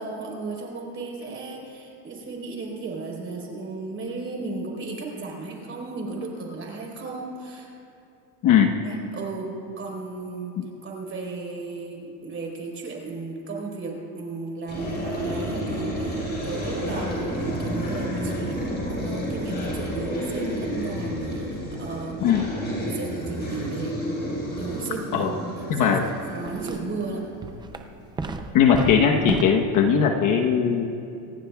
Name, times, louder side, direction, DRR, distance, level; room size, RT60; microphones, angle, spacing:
voice 1, 0.0-7.7 8.8-10.6 10.8-22.4 22.8-24.0 24.6-26.0 26.3-27.3, right 3 dB, 25° right, -1 dB, 4.0 m, -35 dB
voice 2, 8.4-8.7 10.6-10.7 22.2-22.5 25.1-25.3 25.7-26.0 28.5-31.0, left 7 dB, 40° left, 3 dB, 1.0 m, -19 dB
sound 1, 14.7-27.6, equal, 20° left, 4.3 m, -30 dB
sound 2, 26.0-26.1 26.4-27.0 27.4-29.4, right 3 dB, 10° right, 0.4 m, -32 dB
26.0 x 17.5 x 2.3 m, 2.7 s
supercardioid pair, 140°, 47 cm